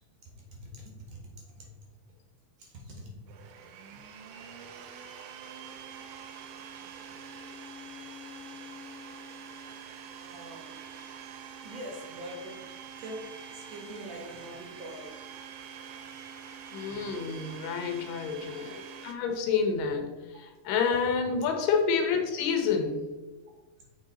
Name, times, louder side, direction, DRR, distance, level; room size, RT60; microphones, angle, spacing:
voice 1, 0.5-1.2 1.6-1.7 2.6-3.1 4.9-5.0 10.2-10.7 11.6-12.7 13.0-13.2 13.5-15.1, equal, 60° right, -1 dB, 2.2 m, -43 dB
Domestic sounds home sounds, 3.3-19.2, right 6 dB, 85° right, 2.3 m, -45 dB
voice 2, 16.7-20.1 20.4-23.1, left 5 dB, 90° left, 4 dB, 2.6 m, -28 dB
7.0 x 3.9 x 3.9 m, 1.1 s
omnidirectional pair, 3.8 m